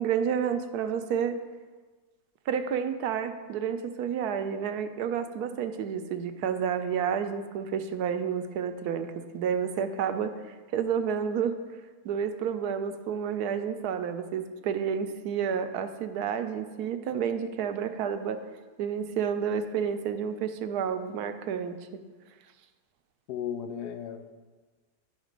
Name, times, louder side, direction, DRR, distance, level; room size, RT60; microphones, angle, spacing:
voice 1, 0.0-1.4 2.5-11.5 12.0-18.4 18.8-22.0, right 7 dB, 80° right, 8 dB, 1.1 m, -30 dB
voice 2, 23.3-24.3, left 8 dB, 85° left, 8 dB, 1.2 m, -35 dB
10.5 x 3.6 x 5.1 m, 1.3 s
omnidirectional pair, 1.7 m